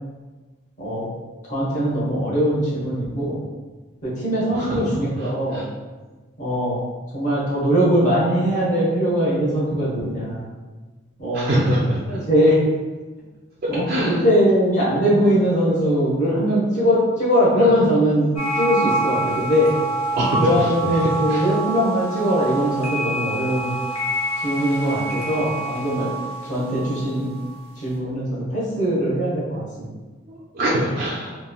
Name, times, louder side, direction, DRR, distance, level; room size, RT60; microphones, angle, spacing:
voice 1, 0.8-1.1 1.5-3.4 4.0-5.6 6.4-6.8 7.1-10.4 11.2-11.5 12.1-12.5 13.7-19.7 20.4-23.7 24.4-26.1 26.5-27.3 27.8-29.9, equal, 35° left, -7 dB, 0.8 m, -21 dB
voice 2, 4.5-5.7 11.3-12.5 13.9-14.2 17.6-17.7 20.1-21.6 30.3-31.4, right 1 dB, 40° right, -6 dB, 0.3 m, -25 dB
sound 1, 18.4-27.6, right 2 dB, 85° left, 0.6 m, -27 dB
3.0 x 2.2 x 2.3 m, 1.3 s
head